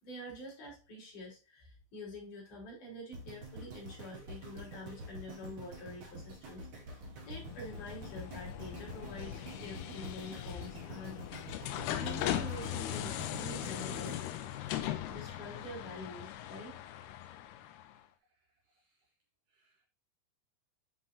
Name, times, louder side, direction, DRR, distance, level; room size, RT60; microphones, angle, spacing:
voice 1, 0.0-11.2 11.9-14.2 15.1-16.8, left 1 dB, 50° left, -3 dB, 4.5 m, -47 dB
sound 1, 3.1-15.3 15.9-16.0, right 1 dB, 40° right, 2.1 m, -48 dB
sound 2, 7.2-18.0, left 12 dB, 80° left, 2.6 m, -39 dB
voice 2, 18.7-19.1 19.5-19.9, right 2 dB, 80° right, 4 dB, 1.9 m, -77 dB
7.8 x 5.4 x 2.5 m, 0.32 s
omnidirectional pair, 4.9 m